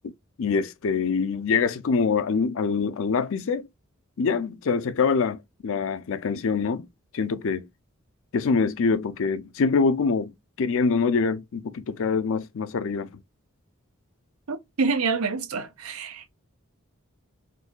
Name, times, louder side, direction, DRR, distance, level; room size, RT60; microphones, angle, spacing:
voice 1, 0.4-3.7 4.2-6.9 7.1-7.7 8.3-10.3 10.6-13.1, left 5 dB, 65° left, 0.5 m, -24 dB
voice 2, 14.5-16.3, right 4 dB, 90° right, 0.7 m, -27 dB
3.8 x 2.7 x 2.2 m
head